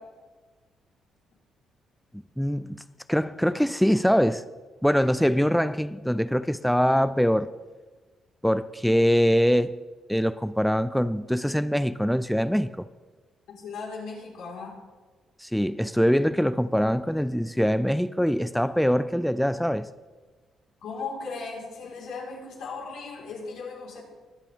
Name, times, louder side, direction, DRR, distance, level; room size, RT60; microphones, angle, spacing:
voice 1, 2.4-2.8 3.1-4.4 4.8-7.5 8.4-9.8 10.1-12.9 15.4-19.9, equal, ahead, 0.4 m, -23 dB
voice 2, 13.5-14.8 20.8-24.0, left 4 dB, 80° left, 4.3 m, -37 dB
22.0 x 8.3 x 3.6 m
cardioid pair, 90°, 0 cm